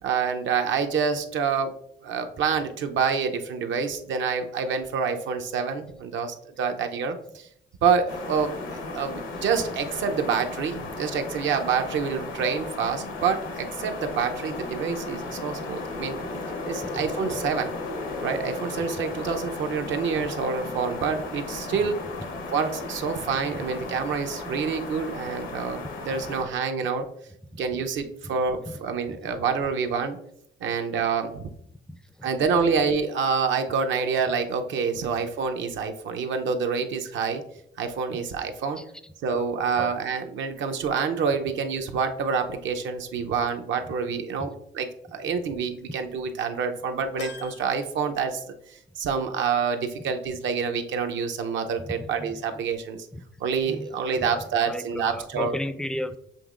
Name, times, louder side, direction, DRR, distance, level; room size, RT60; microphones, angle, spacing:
voice 1, 0.0-1.7 2.0-7.5 7.8-16.2 16.7-17.7 18.2-22.0 22.5-27.1 27.6-30.2 30.6-31.5 32.2-37.4 37.8-38.8 39.2-48.5 49.0-53.1 53.4-55.6, right 6 dB, 70° right, 6 dB, 0.6 m, -27 dB
sound 1, 8.1-26.4, left 3 dB, 85° left, 0.9 m, -35 dB
voice 2, 16.8-17.1 21.7-21.9 27.5-27.8 28.2-28.3 28.7-28.8 29.1-29.5 30.6-30.8 31.9-32.3 38.1-38.3 38.8-38.9 39.8-39.9 43.2-43.3 44.4-44.5 51.8-52.4 53.1-53.2 53.7-53.9 54.2-54.3 54.7-56.2, left 1 dB, 5° left, 11 dB, 0.3 m, -36 dB
sound 2, 47.2-48.8 49.2-49.3 50.6-50.7, left 4 dB, 60° left, 0.7 m, -43 dB
7.0 x 3.1 x 2.4 m, 0.73 s
cardioid pair, 90°, 20 cm